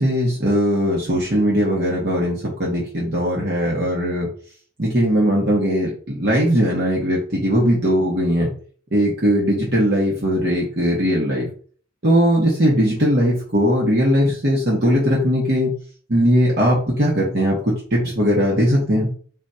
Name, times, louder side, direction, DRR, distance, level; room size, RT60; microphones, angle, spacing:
voice 1, 0.0-4.3 4.8-8.5 8.9-11.5 12.0-15.7 16.1-19.1, equal, 55° right, -4 dB, 1.2 m, -19 dB
4.0 x 2.5 x 4.3 m, 0.44 s
head